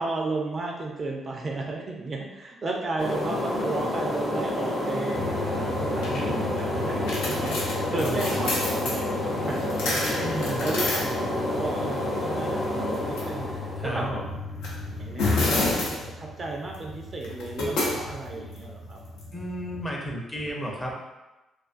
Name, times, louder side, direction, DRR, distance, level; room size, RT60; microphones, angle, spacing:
voice 1, 0.0-14.1 15.0-19.0, right 3 dB, 40° right, 0 dB, 0.4 m, -34 dB
sound 1, 3.0-14.0, left 1 dB, 50° left, 0.8 m, -29 dB
sound 2, 5.1-19.9, left 2 dB, 90° left, 0.6 m, -31 dB
voice 2, 8.0-8.5 10.2-10.6 13.8-14.3 19.3-20.9, equal, 15° left, -2 dB, 0.6 m, -32 dB
2.4 x 2.4 x 2.4 m, 1.0 s
cardioid pair, 90°, 0 cm